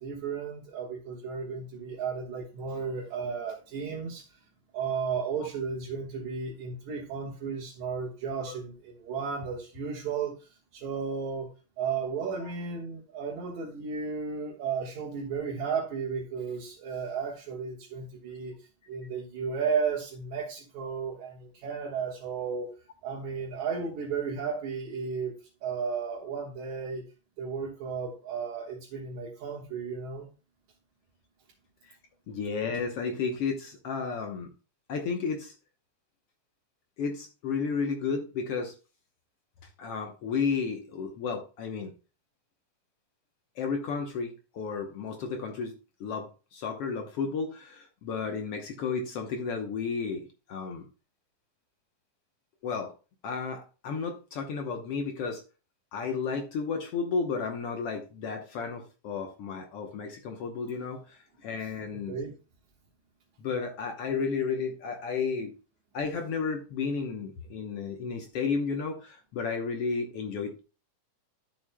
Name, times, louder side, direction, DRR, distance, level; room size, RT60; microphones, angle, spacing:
voice 1, 0.0-4.4 4.7-11.5 11.8-18.5 18.9-22.7 23.0-27.0 27.4-30.3 61.6-61.7 62.1-62.4, right 6 dB, 65° right, -2 dB, 2.7 m, -34 dB
voice 2, 32.3-34.5 34.9-35.5 37.0-38.7 39.8-41.9 43.6-45.7 46.0-50.9 52.6-52.9 53.2-55.4 55.9-62.1 63.4-65.5 65.9-70.6, left 5 dB, 65° left, 4 dB, 1.6 m, -32 dB
12.5 x 7.3 x 2.2 m, 0.33 s
omnidirectional pair, 3.6 m